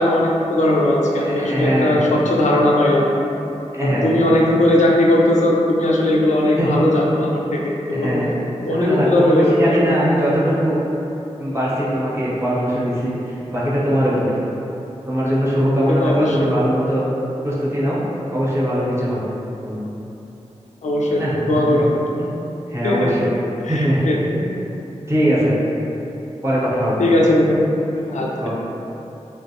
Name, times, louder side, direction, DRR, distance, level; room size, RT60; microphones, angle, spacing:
voice 1, 0.0-3.1 3.8-8.2 8.6-9.7 15.9-16.5 20.8-21.9 22.8-23.1 23.6-24.2 27.0-27.7 28.1-28.5, left 1 dB, 85° left, -2 dB, 0.4 m, -18 dB
voice 2, 1.2-2.0 3.7-4.2 6.6-6.7 7.9-10.8 11.4-14.4 15.1-17.0 17.4-18.0 18.3-19.3 19.6-19.9 21.1-21.8 22.2-22.4 22.7-23.3 23.7-24.1 24.3-24.5 25.1-25.6 26.4-27.0 28.4-28.5, equal, 20° right, -8 dB, 0.7 m, -21 dB
3.1 x 2.0 x 2.7 m, 3.0 s
wide cardioid pair, 70°, 12 cm